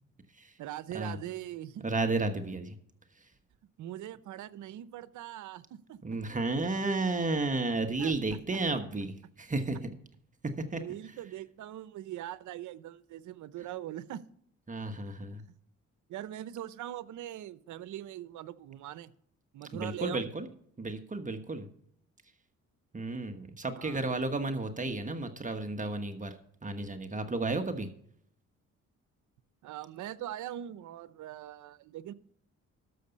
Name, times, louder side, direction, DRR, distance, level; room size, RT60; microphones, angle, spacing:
voice 1, 0.6-1.8 3.8-6.2 8.0-8.6 10.8-14.2 15.5-15.6 16.1-19.1 19.5-20.3 23.7-24.1 29.6-32.1, right 12 dB, 75° right, 16 dB, 0.8 m, -42 dB
voice 2, 1.8-2.8 6.0-9.9 10.7-10.8 14.7-15.4 19.7-20.5 20.8-21.7 22.9-26.4 26.6-27.9, right 3 dB, 25° right, 6 dB, 1.3 m, -32 dB
13.0 x 6.9 x 5.3 m, 0.65 s
cardioid pair, 90°, 30 cm